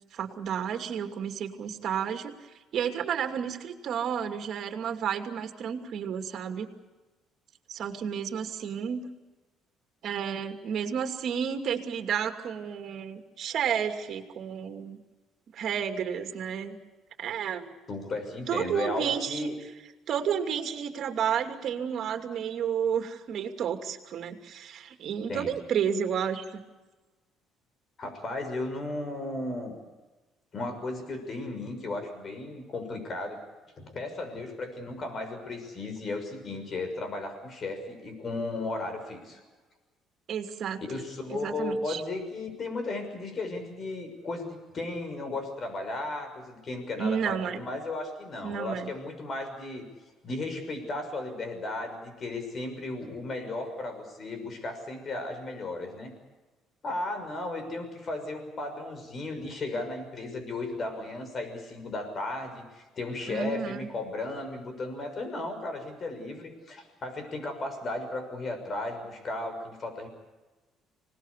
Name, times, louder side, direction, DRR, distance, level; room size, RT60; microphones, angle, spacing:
voice 1, 0.1-2.3 2.7-6.7 7.7-9.1 10.0-15.0 15.5-16.8 17.2-17.7 18.5-19.5 20.1-26.6 40.3-40.8 41.3-42.0 47.0-47.6 48.4-48.9 63.3-63.9, right 8 dB, 60° right, 6 dB, 2.7 m, -31 dB
voice 2, 17.9-19.6 25.3-25.5 28.0-29.8 30.5-33.4 33.8-39.4 40.8-49.9 50.2-56.1 56.8-70.1, left 2 dB, 40° left, 7 dB, 6.3 m, -35 dB
25.5 x 19.5 x 8.3 m, 1.2 s
cardioid pair, 100°, 0 cm